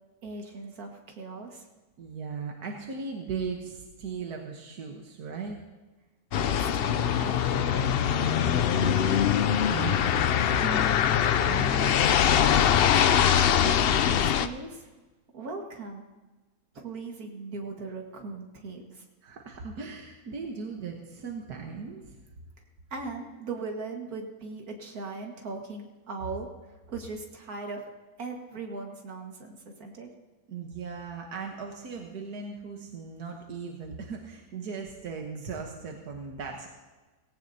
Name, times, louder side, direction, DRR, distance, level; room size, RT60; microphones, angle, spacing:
voice 1, 0.2-1.7 6.4-8.0 13.6-14.9 15.3-16.0 16.7-19.0 22.9-26.5 26.9-27.9 28.2-30.1, right 4 dB, 70° right, 2 dB, 2.2 m, -39 dB
voice 2, 2.0-5.6 8.4-12.0 12.3-12.7 19.2-22.2 30.5-36.7, right 5 dB, 90° right, 1 dB, 1.7 m, -38 dB
sound 1, 6.3-14.5, left 9 dB, 90° left, 0.5 m, -23 dB
18.0 x 17.0 x 2.8 m, 1.2 s
omnidirectional pair, 1.6 m